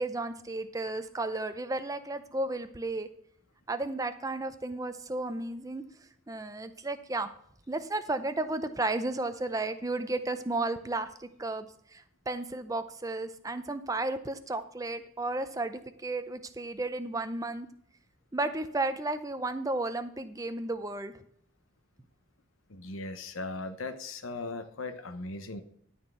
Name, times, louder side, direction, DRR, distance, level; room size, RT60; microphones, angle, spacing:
voice 1, 0.0-3.1 3.7-5.8 6.3-7.3 7.7-11.7 11.9-17.7 18.3-21.2, right 2 dB, 15° right, 10 dB, 0.6 m, -33 dB
voice 2, 22.7-25.6, left 3 dB, 85° left, 8 dB, 0.9 m, -38 dB
12.5 x 4.4 x 6.1 m, 0.66 s
head